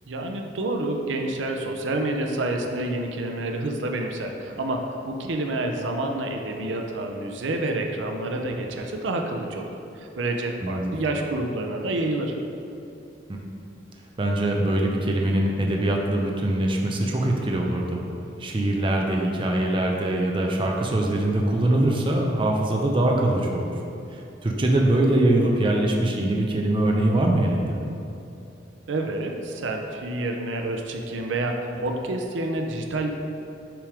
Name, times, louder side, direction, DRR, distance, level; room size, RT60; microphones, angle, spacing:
voice 1, 0.1-9.7 9.9-12.4 28.9-33.1, right 2 dB, 85° right, 3 dB, 0.5 m, -28 dB
voice 2, 10.6-11.0 13.3-13.4 14.2-18.0 18.4-23.7 24.1-27.8, right 1 dB, 25° right, 0 dB, 0.5 m, -23 dB
6.0 x 3.4 x 4.9 m, 2.7 s
head